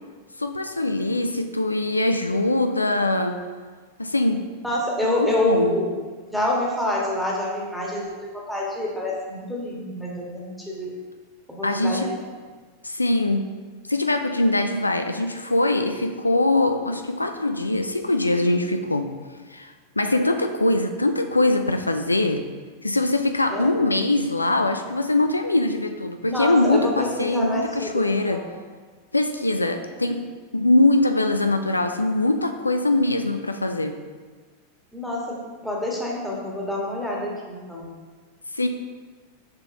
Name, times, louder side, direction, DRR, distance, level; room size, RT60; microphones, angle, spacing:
voice 1, 0.4-3.4 4.0-4.4 5.0-5.8 11.6-12.1 12.8-13.5 13.9-19.1 19.5-22.5 22.8-28.4 29.1-30.3 30.5-34.0 38.5-38.7, left 2 dB, 80° left, 6 dB, 0.3 m, -22 dB
voice 2, 4.6-5.9 6.3-10.9 11.5-12.1 23.5-23.7 26.3-28.5 34.9-35.4 35.6-37.9, left 1 dB, ahead, -4 dB, 1.6 m, -27 dB
6.7 x 5.7 x 2.8 m, 1.4 s
figure-of-eight pair, 90°, 0 cm